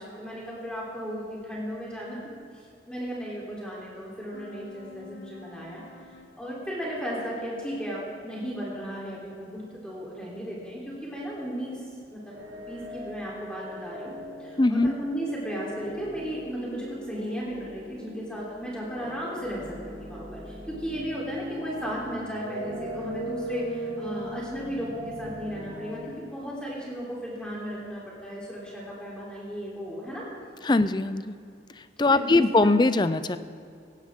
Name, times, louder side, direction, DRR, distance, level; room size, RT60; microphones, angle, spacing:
voice 1, 0.0-2.2 2.5-5.8 6.4-14.1 14.4-30.3 32.0-32.7, equal, 5° left, -6 dB, 3.6 m, -35 dB
sound 1, 4.3-9.2, left 4 dB, 70° left, 1.1 m, -52 dB
sound 2, 12.3-26.1, equal, 70° right, 2.9 m, -39 dB
voice 2, 14.6-14.9 30.6-31.3 31.8-33.4, left 2 dB, 25° left, 13 dB, 0.4 m, -21 dB
17.5 x 16.5 x 3.7 m, 2.5 s
head